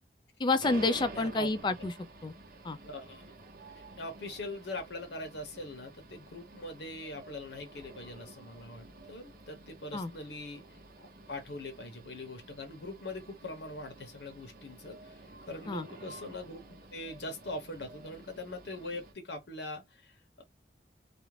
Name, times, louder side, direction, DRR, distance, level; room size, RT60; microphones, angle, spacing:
voice 1, 0.4-2.3 2.6-2.8 9.9-10.1 15.7-15.9, left 3 dB, 25° left, 0.3 m, -29 dB
sound 1, 0.6-19.1, right 3 dB, 50° right, 0.7 m, -51 dB
voice 2, 1.1-1.5 2.8-3.2 3.8-10.6 11.0-20.4, left 2 dB, 70° left, 0.8 m, -42 dB
2.4 x 2.0 x 3.1 m
head